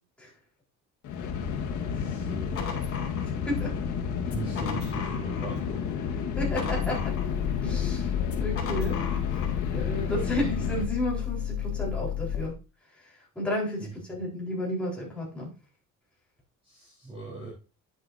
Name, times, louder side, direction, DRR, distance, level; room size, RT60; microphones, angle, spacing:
sound 1, 1.0-10.8, left 6 dB, 65° left, 1.8 m, -31 dB
voice 1, 1.8-2.9 4.3-5.8 13.8-13.9 16.6-17.5, right 2 dB, 15° right, -6 dB, 4.1 m, -39 dB
sound 2, 2.5-3.7 4.2-5.7 6.0-7.6 8.2-9.6, left 6 dB, 45° left, 2.8 m, -39 dB
sound 3, 6.3-12.5, left 10 dB, 85° left, 1.8 m, -32 dB
voice 2, 6.4-7.1 7.6-8.1 8.4-9.0 9.3-12.5 13.3-15.5, left 1 dB, 5° left, -5 dB, 4.3 m, -32 dB
10.5 x 8.4 x 2.7 m, 0.31 s
cardioid pair, 155°, 32 cm